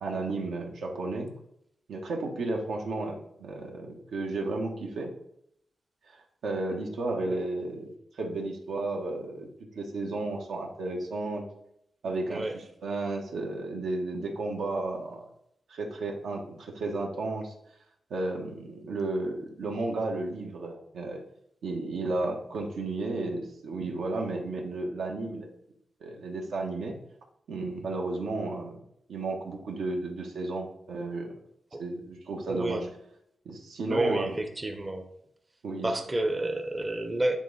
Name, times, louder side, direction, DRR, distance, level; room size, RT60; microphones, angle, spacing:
voice 1, 0.0-1.3 1.9-5.1 6.1-9.5 9.7-11.4 12.0-15.3 15.7-17.5 18.1-21.2 21.6-25.5 26.0-26.9 27.5-28.7 29.1-31.3 31.8-32.9 33.4-34.4 35.6-35.9, right 2 dB, 85° right, 1 dB, 1.3 m, -33 dB
voice 2, 12.3-12.6 31.7-31.8 32.5-32.8 33.9-35.0 35.8-37.4, right 1 dB, 20° right, 6 dB, 0.6 m, -29 dB
9.1 x 3.8 x 4.0 m, 0.74 s
wide cardioid pair, 125°, 0 cm